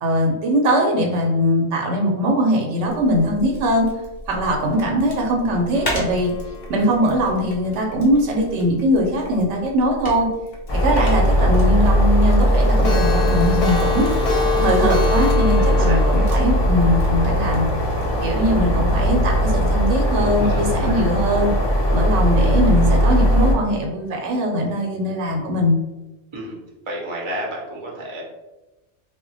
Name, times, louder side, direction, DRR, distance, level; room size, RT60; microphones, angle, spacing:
voice 1, 0.0-3.9 4.3-6.3 6.7-10.3 10.7-14.1 14.6-17.7 18.2-21.5 21.9-25.8, equal, 90° right, 1 dB, 0.9 m, -21 dB
sound 1, 2.9-18.6, equal, 20° left, 0.8 m, -37 dB
Clock, 5.7-8.8 9.2-9.3 9.7-9.8 10.1-10.2 10.5-10.6 11.0-11.1 11.4-11.5 11.8-11.9 12.2-18.1, left 4 dB, 65° left, 0.7 m, -27 dB
sound 2, 10.7-23.5, equal, 45° left, 0.3 m, -19 dB
voice 2, 15.6-16.3 20.1-21.1 22.0-22.2 26.3-26.6 26.9-28.2, equal, 35° right, -3 dB, 0.5 m, -31 dB
2.1 x 2.1 x 3.8 m, 1.0 s
omnidirectional pair, 1.2 m